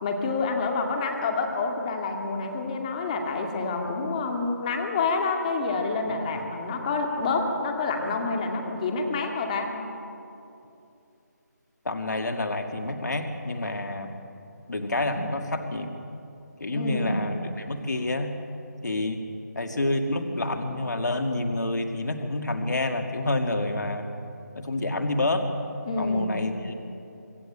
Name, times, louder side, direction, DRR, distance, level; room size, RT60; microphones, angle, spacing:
voice 1, 0.0-9.7 16.7-17.2 25.9-26.4, left 3 dB, 20° left, 3 dB, 2.3 m, -28 dB
voice 2, 11.8-14.1 14.7-16.0 16.6-18.4 18.8-19.2 19.6-24.1 24.6-25.5 26.0-26.7, left 2 dB, 70° left, 5 dB, 2.2 m, -28 dB
26.0 x 14.0 x 8.7 m, 2.7 s
figure-of-eight pair, 165°, 10 cm